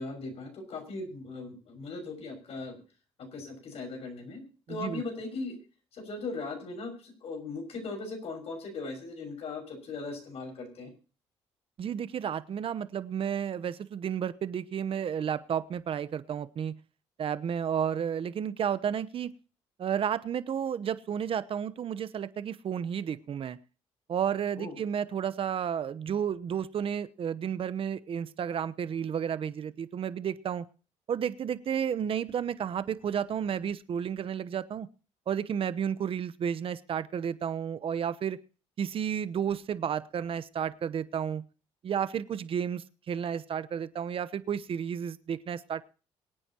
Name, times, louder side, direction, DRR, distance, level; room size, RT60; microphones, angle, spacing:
voice 1, 0.0-2.8 3.2-4.4 4.7-5.6 5.9-10.9 24.5-24.7, left 3 dB, 65° left, 3 dB, 6.2 m, -38 dB
voice 2, 4.7-5.0 11.8-16.8 17.2-19.3 19.8-23.6 24.1-30.7 31.1-34.9 35.3-38.4 38.8-41.4 41.8-45.8, right 8 dB, 55° right, 15 dB, 0.9 m, -32 dB
23.5 x 9.0 x 3.0 m, 0.37 s
supercardioid pair, 75°, 12 cm